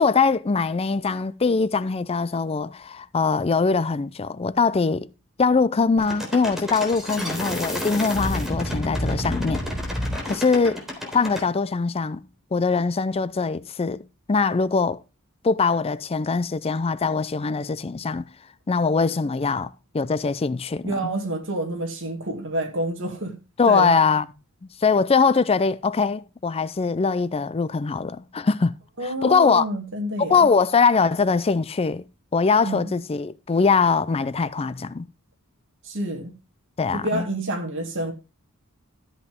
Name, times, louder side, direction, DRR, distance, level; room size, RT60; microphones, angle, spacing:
voice 1, 0.0-5.1 5.4-9.6 10.3-12.2 12.5-15.0 15.4-18.2 18.7-21.1 23.6-24.2 24.8-28.7 29.0-29.6 30.2-32.0 32.3-35.1 36.8-37.3, left 4 dB, 25° left, 0.4 m, -22 dB
sound 1, 6.0-11.5, equal, ahead, 3.8 m, -29 dB
voice 2, 20.8-23.4 23.7-23.9 29.0-30.5 32.6-32.8 35.8-36.3 36.9-38.1, right 1 dB, 60° right, 2.4 m, -28 dB
13.0 x 8.0 x 3.6 m
head